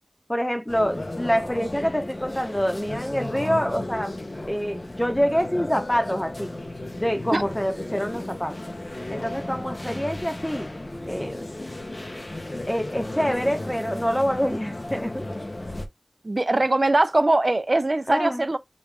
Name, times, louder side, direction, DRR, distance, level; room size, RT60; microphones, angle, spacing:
voice 1, 0.3-4.1 4.5-6.5 7.0-8.6 9.1-10.7 11.1-11.5 12.7-15.2 18.1-18.4, equal, 10° left, 0.9 m, -26 dB
sound 1, 0.7-15.9, left 1 dB, 45° left, 0.8 m, -34 dB
voice 2, 16.2-18.6, right 2 dB, 50° right, 0.6 m, -21 dB
5.0 x 2.5 x 3.4 m
wide cardioid pair, 60°, 0 cm